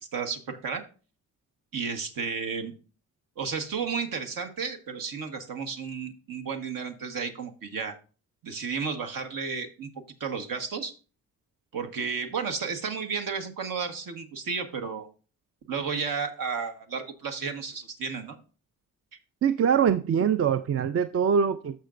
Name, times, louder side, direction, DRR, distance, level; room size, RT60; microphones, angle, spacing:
voice 1, 0.1-0.8 1.7-2.7 3.4-8.0 8.4-9.9 10.2-10.9 11.7-15.1 15.7-18.4, right 5 dB, 70° right, 1.3 m, -32 dB
voice 2, 19.4-21.9, right 7 dB, 40° right, 0.5 m, -23 dB
13.5 x 5.9 x 2.5 m
cardioid pair, 65°, 35 cm